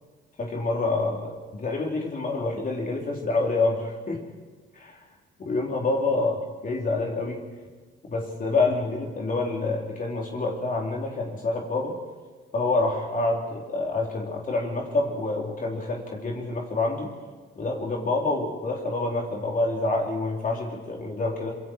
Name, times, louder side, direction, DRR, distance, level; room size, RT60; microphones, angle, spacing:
voice 1, 0.4-4.2 4.7-5.0 5.4-7.4 8.0-12.0 12.5-17.1 17.6-21.5, left 3 dB, 45° left, -1 dB, 4.0 m, -27 dB
26.5 x 23.5 x 4.8 m, 1.4 s
cardioid pair, 90°, 20 cm